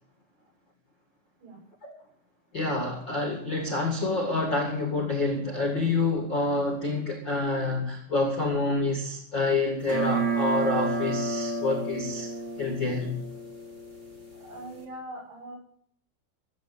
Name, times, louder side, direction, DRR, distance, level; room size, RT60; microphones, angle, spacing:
voice 1, 2.5-12.3 12.6-13.2, left 3 dB, 80° left, 2 dB, 1.0 m, -27 dB
sound 1, 9.8-14.8, right 3 dB, 25° right, 1.8 m, -31 dB
voice 2, 14.3-15.6, right 1 dB, 75° right, -4 dB, 9.5 m, -42 dB
15.5 x 8.3 x 8.0 m, 0.64 s
omnidirectional pair, 6.0 m